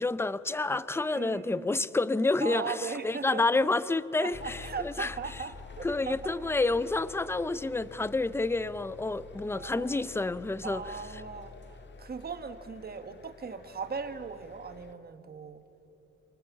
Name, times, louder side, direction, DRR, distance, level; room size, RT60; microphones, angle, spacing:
voice 1, 0.0-5.1 5.8-10.9, left 3 dB, 10° left, 16 dB, 0.5 m, -29 dB
voice 2, 1.2-1.8 2.4-3.4 4.2-6.3 9.5-10.0 10.6-15.6, right 5 dB, 35° right, 9 dB, 1.4 m, -39 dB
sound 1, 4.3-14.9, left 4 dB, 40° left, 1.5 m, -49 dB
28.0 x 27.0 x 7.3 m, 2.9 s
wide cardioid pair, 160°, 29 cm